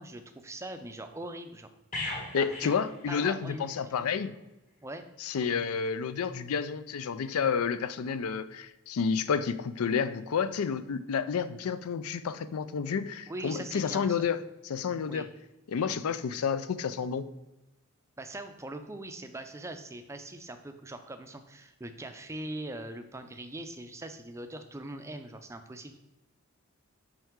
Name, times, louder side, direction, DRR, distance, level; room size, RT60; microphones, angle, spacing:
voice 1, 0.0-1.7 2.4-2.7 3.1-3.9 4.8-5.0 13.3-14.3 15.1-15.3 18.2-26.0, right 1 dB, 15° right, 7 dB, 0.4 m, -41 dB
sound 1, 1.9-3.8 4.1-4.3, left 2 dB, 35° left, 1.5 m, -39 dB
voice 2, 2.3-4.3 5.2-14.4 14.6-15.3 15.7-17.3, left 6 dB, 80° left, 14 dB, 0.4 m, -30 dB
5.8 x 5.4 x 3.6 m, 0.97 s
head